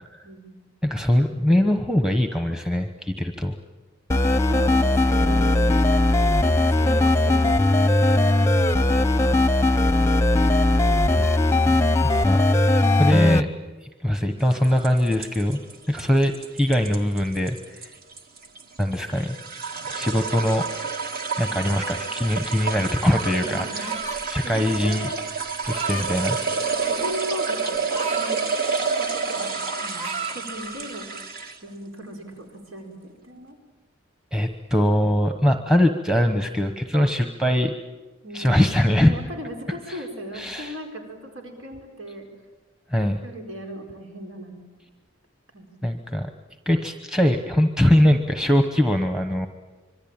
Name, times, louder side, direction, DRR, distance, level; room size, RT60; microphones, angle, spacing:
voice 1, 0.8-3.5 11.2-11.3 12.0-12.4 13.0-13.5 13.8-15.6 15.9-17.9 18.8-19.4 19.9-20.7 21.4-23.9 24.3-25.1 25.7-26.4 34.3-37.7 38.3-39.1 39.9-40.0 40.3-40.8 42.9-43.2 45.8-46.3 46.7-49.5, left 1 dB, 5° right, 6 dB, 1.1 m, -22 dB
sound 1, 4.1-13.4, left 2 dB, 15° left, 0.8 m, -19 dB
voice 2, 4.4-5.6 6.4-8.5 8.9-9.5 11.5-11.8 21.5-21.7 23.4-24.0 24.4-25.3 25.9-26.1 26.8-31.0 31.6-33.6 38.2-42.3 43.2-44.5 45.5-45.7, equal, 85° right, 3 dB, 4.5 m, -37 dB
sound 2, 14.5-31.7, right 4 dB, 50° right, 1.9 m, -29 dB
sound 3, 23.8-24.4 25.4-26.1 27.0-28.3 28.8-29.1 29.4-30.4, right 3 dB, 30° right, 1.8 m, -33 dB
26.0 x 23.5 x 8.9 m, 1.2 s
head